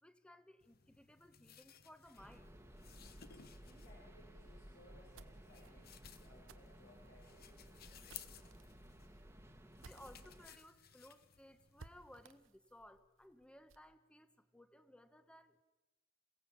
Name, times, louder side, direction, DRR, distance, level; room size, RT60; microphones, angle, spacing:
voice 1, 0.0-2.5 9.8-15.6, left 1 dB, 5° left, 11 dB, 1.2 m, -60 dB
sound 1, 0.6-12.4, left 9 dB, 50° left, 1.1 m, -60 dB
sound 2, 2.2-10.5, equal, 10° right, 1.6 m, -58 dB
voice 2, 3.6-8.6, left 1 dB, 80° left, -2 dB, 5.6 m, -65 dB
sound 3, 4.8-10.5 10.9-11.0 11.3-11.4 11.8-13.9, right 3 dB, 80° right, 1.1 m, -61 dB
27.5 x 17.0 x 8.6 m, 1.1 s
head